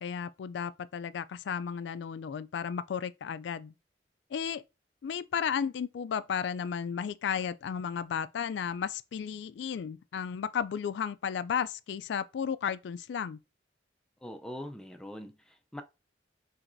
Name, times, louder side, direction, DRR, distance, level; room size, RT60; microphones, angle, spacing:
voice 1, 0.0-3.7 4.3-4.6 5.0-13.4, left 7 dB, 65° left, 0.3 m, -34 dB
voice 2, 14.2-15.8, equal, 5° left, 0.4 m, -42 dB
5.8 x 3.1 x 2.6 m
head